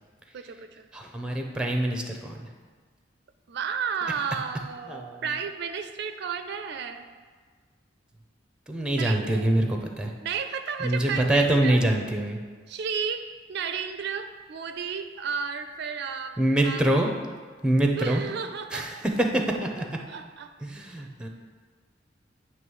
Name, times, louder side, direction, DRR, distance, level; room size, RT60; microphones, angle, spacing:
voice 1, 0.3-0.9 3.5-7.0 9.0-9.5 10.2-11.8 12.7-16.8 17.9-19.0 20.1-20.5, right 6 dB, 60° right, 9 dB, 0.4 m, -33 dB
voice 2, 0.9-2.5 4.9-5.3 8.7-10.1 10.8-12.4 16.4-17.1 17.6-18.2 18.7-19.9 20.6-21.3, right 1 dB, 5° right, 2 dB, 0.7 m, -25 dB
9.2 x 3.1 x 6.3 m, 1.5 s
head